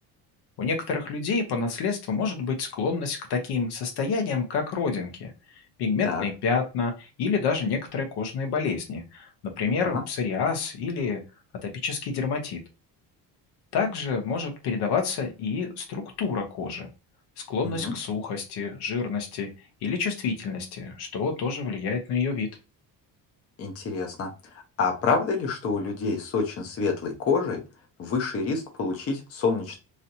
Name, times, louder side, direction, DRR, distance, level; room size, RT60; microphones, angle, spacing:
voice 1, 0.6-9.3 9.6-11.2 11.6-12.6 13.7-16.9 17.5-19.5 19.8-22.5, left 5 dB, 70° left, 4 dB, 1.0 m, -28 dB
voice 2, 17.6-18.0 23.6-24.3 24.8-27.6 28.0-29.8, left 4 dB, 35° left, 2 dB, 0.8 m, -27 dB
3.1 x 2.8 x 2.6 m, 0.30 s
cardioid pair, 155°, 41 cm